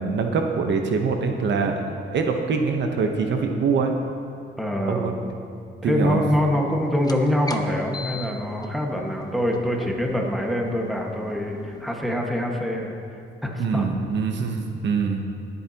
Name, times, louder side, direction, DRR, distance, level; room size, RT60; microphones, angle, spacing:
voice 1, 0.0-3.9 4.8-5.1 5.8-6.2 13.6-15.2, right 5 dB, 65° right, 4 dB, 1.0 m, -24 dB
voice 2, 4.6-5.2 5.8-13.0 13.4-13.9, left 1 dB, ahead, 0 dB, 1.6 m, -25 dB
sound 1, 6.9-12.2, left 3 dB, 20° left, 0.8 m, -40 dB
20.5 x 8.1 x 2.9 m, 2.4 s
cardioid pair, 90°, 20 cm